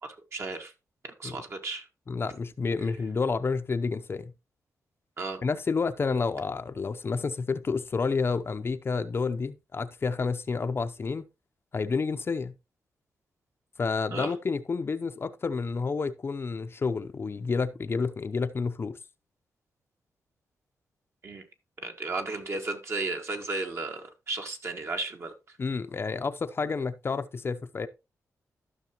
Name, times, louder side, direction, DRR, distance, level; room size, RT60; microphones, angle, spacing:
voice 1, 0.0-0.7 1.0-1.8 5.2-5.4 14.1-14.3 21.2-21.5 21.8-25.3, right 3 dB, 45° right, 1.8 m, -34 dB
voice 2, 2.1-4.3 5.4-11.2 11.7-12.5 13.8-19.0 25.6-27.9, left 4 dB, 40° left, 0.7 m, -30 dB
13.5 x 6.0 x 3.0 m
cardioid pair, 85°, 6 cm